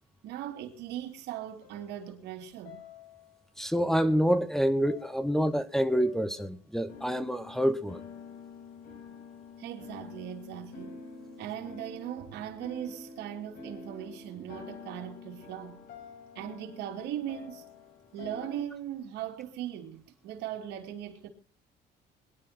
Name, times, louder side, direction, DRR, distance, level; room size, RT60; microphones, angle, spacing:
voice 1, 0.2-2.8 9.6-11.0 11.4-15.8 16.3-17.6 18.1-21.3, right 11 dB, 85° right, 2.8 m, -39 dB
sound 1, 1.6-2.3 2.6-3.4 3.7-4.5 4.8-5.6 5.9-6.4 6.9-18.6, left 4 dB, 65° left, 5.6 m, -48 dB
voice 2, 3.6-8.0, equal, ahead, 1.1 m, -27 dB
22.0 x 11.0 x 4.4 m
cardioid pair, 110°, 17 cm